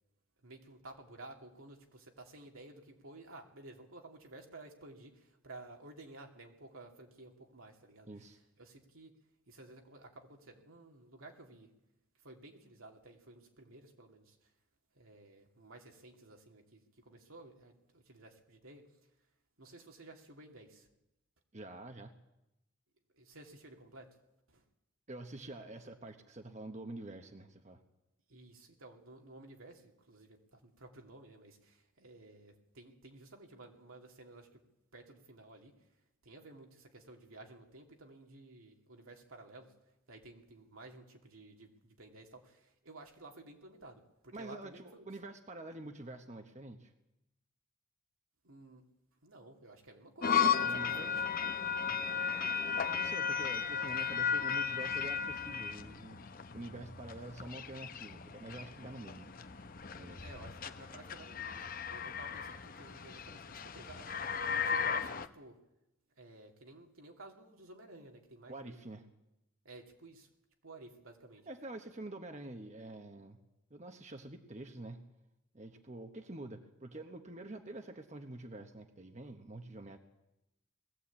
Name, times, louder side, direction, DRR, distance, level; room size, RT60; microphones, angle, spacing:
voice 1, 0.4-8.1 8.6-9.2 9.5-11.7 12.2-14.5 14.9-18.9 19.6-20.9 23.1-24.1 24.5-24.6 28.3-34.6 34.9-35.9 36.2-39.7 40.1-45.1 48.4-48.8 49.2-51.1 60.2-64.1 64.5-65.6 66.2-68.8 69.6-70.3 70.6-71.5, right 2 dB, 85° right, 2 dB, 2.7 m, -54 dB
voice 2, 8.1-8.4 21.5-22.1 25.1-27.8 44.3-46.9 50.6-51.2 51.8-52.0 52.8-59.3 59.9-60.2 68.5-69.0 71.5-73.4 73.7-75.0 75.5-80.0, right 2 dB, 35° right, 6 dB, 1.1 m, -47 dB
sound 1, 50.2-65.3, left 7 dB, 45° left, 0.8 m, -35 dB
20.0 x 15.0 x 8.6 m, 0.90 s
head